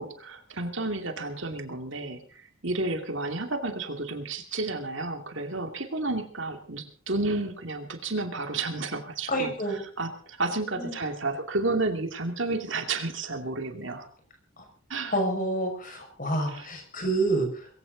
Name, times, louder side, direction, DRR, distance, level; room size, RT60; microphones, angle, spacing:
voice 1, 0.0-9.5 10.0-14.1 14.9-15.1 16.5-16.7, right 2 dB, 60° right, 6 dB, 2.5 m, -31 dB
voice 2, 9.3-9.8 10.8-10.9 14.6-14.7 15.1-17.7, right 1 dB, 40° left, 4 dB, 6.0 m, -28 dB
22.0 x 16.0 x 4.0 m, 0.43 s
head